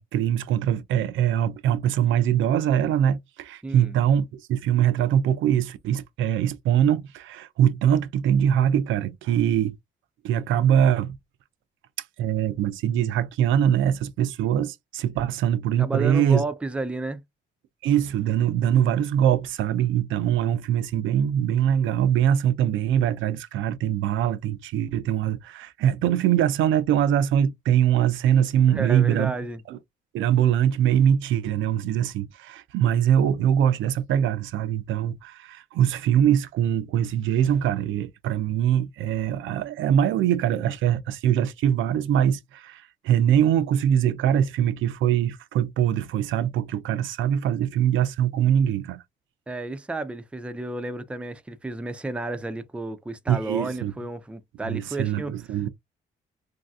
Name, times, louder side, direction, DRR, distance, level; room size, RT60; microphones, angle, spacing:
voice 1, 0.0-9.8 10.2-11.2 12.2-16.4 17.8-29.3 29.7-29.8 30.1-49.0 53.3-53.9 54.6-55.7, right 10 dB, 75° right, 0.4 m, -23 dB
voice 2, 3.6-4.0 15.8-17.2 28.7-29.6 49.5-55.3, right 2 dB, 5° right, 0.4 m, -32 dB
3.1 x 2.6 x 2.3 m
cardioid pair, 90°, 20 cm